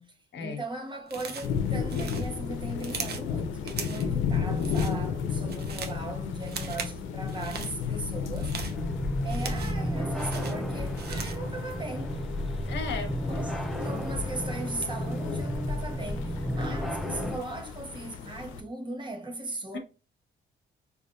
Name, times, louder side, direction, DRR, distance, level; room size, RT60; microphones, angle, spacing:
voice 1, 0.4-8.5 9.2-12.2 13.3-19.8, right 2 dB, 25° right, 1.0 m, -38 dB
sound 1, 1.1-1.6 1.9-3.3 3.7-4.1 4.5-5.0 5.3-6.0 6.4-7.0 7.3-7.7 8.2-9.9 10.2-11.5, right 5 dB, 55° right, 0.8 m, -39 dB
sound 2, 1.4-18.6, left 6 dB, 90° left, 0.5 m, -34 dB
sound 3, 8.7-17.4, equal, ahead, 0.5 m, -32 dB
voice 2, 12.6-13.1 19.7-19.8, left 5 dB, 65° left, 1.0 m, -34 dB
4.8 x 2.5 x 2.5 m
cardioid pair, 90°, 20 cm